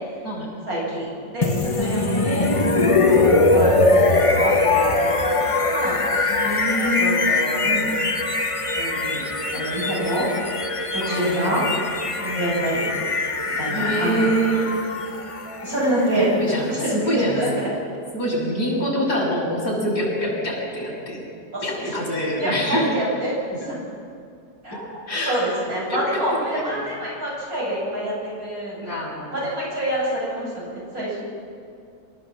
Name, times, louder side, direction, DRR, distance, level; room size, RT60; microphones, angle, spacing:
voice 1, 0.7-2.5 3.1-5.3 5.6-6.0 7.0-7.7 8.8-9.2 9.5-10.3 11.1-11.6 12.3-12.9 13.6-14.3 15.6-16.3 16.7-17.7 21.5-21.8 22.4-23.3 24.6-24.8 25.2-29.0 29.3-31.2, right 1 dB, 55° right, -6 dB, 8.6 m, -26 dB
sound 1, 1.4-17.3, left 3 dB, 25° left, 0.9 m, -22 dB
voice 2, 1.8-2.6 6.2-7.2 7.6-7.9 11.0-11.6 12.2-12.7 13.7-14.7 16.3-17.4 18.1-21.2 21.6-22.9 24.7-24.8 25.1-25.4 25.9-26.9 28.8-29.4, right 1 dB, 65° left, -4 dB, 7.5 m, -26 dB
27.0 x 14.0 x 7.6 m, 2.3 s
omnidirectional pair, 1.8 m